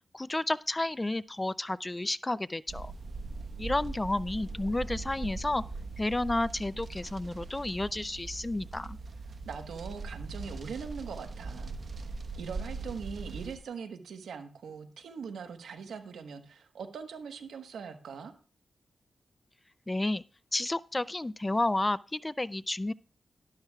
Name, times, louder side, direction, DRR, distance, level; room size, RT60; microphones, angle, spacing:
voice 1, 0.1-2.9 3.6-5.6 6.0-9.0 19.9-20.2 20.5-22.9, left 2 dB, 20° left, 0.4 m, -31 dB
sound 1, 2.7-13.6, right 3 dB, 60° right, 1.0 m, -40 dB
voice 2, 9.5-12.1 12.4-18.3, right 6 dB, 90° right, 1.2 m, -41 dB
12.0 x 11.5 x 2.3 m
cardioid pair, 60°, 0 cm